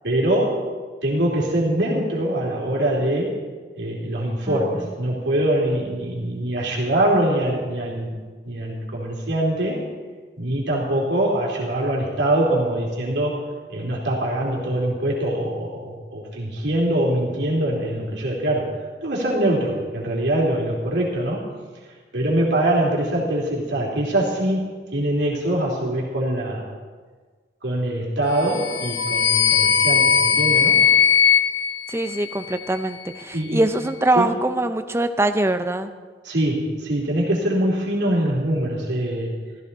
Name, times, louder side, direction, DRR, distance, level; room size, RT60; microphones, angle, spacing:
voice 1, 0.0-0.6 1.0-3.3 3.8-9.8 10.4-18.7 19.0-21.4 22.1-26.6 27.6-30.8 33.3-33.6 34.1-34.3 36.2-39.3, right 1 dB, 70° right, -3 dB, 3.1 m, -23 dB
voice 2, 4.5-4.8 31.9-35.9, right 2 dB, 15° right, 8 dB, 0.6 m, -23 dB
sound 1, 28.4-32.7, left 7 dB, 75° left, 0.6 m, -19 dB
14.5 x 14.5 x 4.1 m, 1.5 s
head